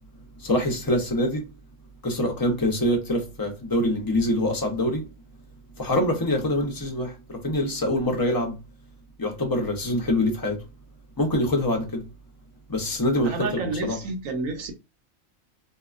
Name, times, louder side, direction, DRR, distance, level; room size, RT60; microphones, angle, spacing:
voice 1, 0.4-1.5 2.0-5.1 5.8-8.6 9.2-10.6 11.2-12.1 12.7-13.5 13.8-14.0, left 1 dB, 25° left, 0.5 m, -25 dB
voice 2, 13.2-14.7, right 3 dB, 75° right, 1.1 m, -30 dB
2.8 x 2.2 x 2.4 m
omnidirectional pair, 1.4 m